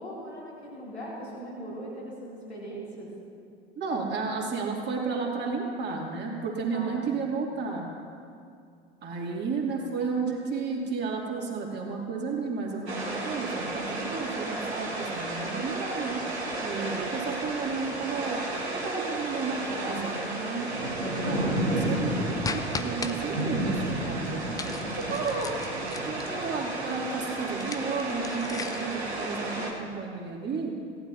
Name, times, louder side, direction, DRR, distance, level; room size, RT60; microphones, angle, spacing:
voice 1, 0.0-3.1 6.7-7.1 21.0-21.5, equal, 85° left, -5 dB, 2.8 m, -39 dB
voice 2, 3.8-7.9 9.0-16.2 16.6-18.4 18.7-20.7 21.3-24.6 25.1-25.5 26.1-30.7, right 4 dB, 35° right, -2 dB, 2.6 m, -32 dB
sound 1, 12.9-29.7, right 2 dB, 85° right, 1.8 m, -32 dB
sound 2, 22.4-23.1 24.5-26.4 27.5-29.0, left 4 dB, 10° left, 0.5 m, -37 dB
17.5 x 12.0 x 2.8 m, 2.4 s
figure-of-eight pair, 75°, 32 cm